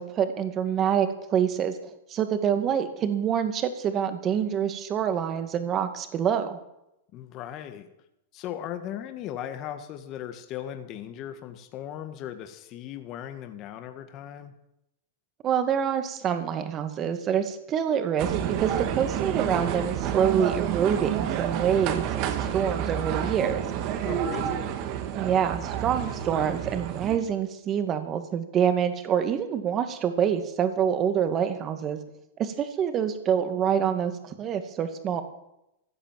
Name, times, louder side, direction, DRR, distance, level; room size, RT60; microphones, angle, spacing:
voice 1, 0.0-1.8 2.1-6.6 15.4-23.7 25.2-32.0 32.4-35.2, right 8 dB, 30° right, 8 dB, 2.2 m, -26 dB
voice 2, 7.1-7.9 8.3-14.5 24.0-24.7, left 10 dB, 40° left, 7 dB, 1.8 m, -37 dB
sound 1, 18.2-27.2, right 10 dB, 45° right, 2.2 m, -29 dB
15.5 x 10.0 x 7.6 m, 0.85 s
hypercardioid pair, 125°, 0 cm